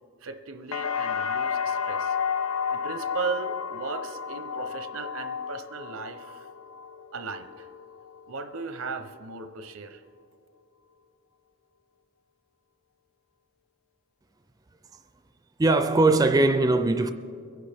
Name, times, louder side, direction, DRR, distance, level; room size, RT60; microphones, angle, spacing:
voice 1, 0.2-2.2 2.7-6.5 7.1-7.7 8.3-10.0, right 4 dB, 85° right, 0.8 m, -36 dB
sound 1, 0.7-8.6 9.0-9.6, left 6 dB, 75° left, 0.6 m, -32 dB
voice 2, 15.6-17.1, right 2 dB, 20° right, 0.4 m, -20 dB
23.5 x 11.0 x 3.5 m
head